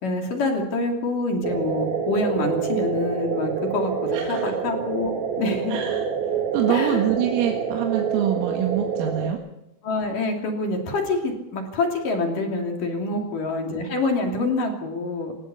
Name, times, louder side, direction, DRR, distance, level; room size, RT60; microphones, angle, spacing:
voice 1, 0.0-5.1 5.4-5.8 6.7-7.1 9.8-15.3, left 2 dB, 45° left, 3 dB, 4.1 m, -26 dB
sound 1, 1.4-9.3, right 6 dB, 55° right, 2.3 m, -27 dB
voice 2, 4.1-4.6 5.7-9.4 13.1-13.4, right 10 dB, 90° right, 3 dB, 4.4 m, -26 dB
28.0 x 16.5 x 7.1 m, 0.85 s
omnidirectional pair, 5.8 m